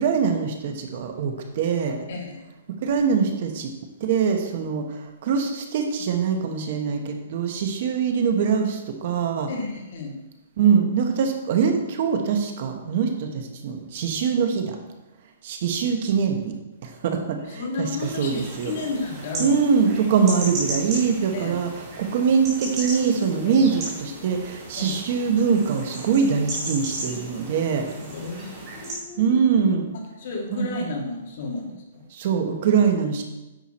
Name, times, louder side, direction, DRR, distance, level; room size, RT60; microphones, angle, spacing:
voice 1, 0.0-2.1 2.8-3.7 4.0-9.5 10.6-14.8 15.4-16.5 16.8-17.9 18.2-18.7 19.4-21.7 22.0-27.9 29.2-29.9 30.5-30.9 32.1-33.2, right 6 dB, 40° right, 5 dB, 1.2 m, -23 dB
voice 2, 9.5-10.2 17.5-19.6 21.3-21.5 23.5-23.6 24.7-25.0 28.0-28.4 28.8-29.3 29.9-32.0, left 3 dB, 45° left, 0 dB, 2.2 m, -32 dB
sound 1, 18.0-28.9, right 1 dB, 20° right, 3.5 m, -35 dB
10.0 x 7.0 x 4.3 m, 1.0 s
hypercardioid pair, 170°, 0 cm